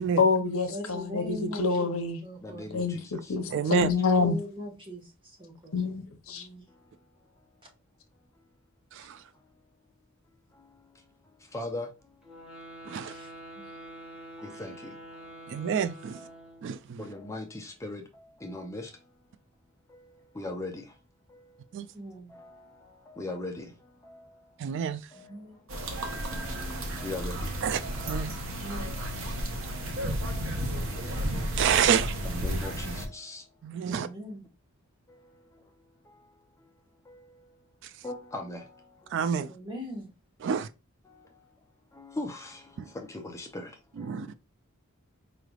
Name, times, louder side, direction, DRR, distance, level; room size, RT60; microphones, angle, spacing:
voice 1, 0.2-2.2 2.7-3.0 3.3-3.4 3.7-4.4 5.7-6.4, left 4 dB, 80° left, 0.8 m, -26 dB
voice 2, 0.7-1.9 2.2-2.7 3.8-3.9 4.1-5.1 5.4-5.7 6.3-6.7 13.0-13.3 21.9-22.3 25.1-25.6 28.5-28.9 33.9-34.4 39.5-40.1, equal, 25° right, 1.4 m, -40 dB
voice 3, 2.4-3.4 6.7-7.0 9.3-9.4 10.5-12.4 14.2-15.6 16.1-16.7 17.0-19.2 19.9-21.0 21.3-21.8 22.3-24.5 25.1-27.6 28.0-28.3 28.7-31.6 32.2-33.6 33.9-34.0 35.1-36.7 37.0-37.7 38.0-39.5 41.0-41.5 41.9-44.3, left 2 dB, 15° left, 0.5 m, -42 dB
voice 4, 3.5-3.9 8.9-9.2 12.9-13.1 15.5-16.3 16.6-17.0 21.7-21.9 24.6-25.1 27.6-28.3 31.6-32.1 33.6-34.1 37.8-37.9 39.1-39.5 40.4-40.7 42.8-42.9 44.0-44.3, right 7 dB, 60° right, 0.3 m, -28 dB
sound 1, 12.2-16.8, right 1 dB, 5° right, 1.1 m, -46 dB
sound 2, 25.7-33.1, equal, 75° right, 0.9 m, -33 dB
4.8 x 3.2 x 2.3 m
head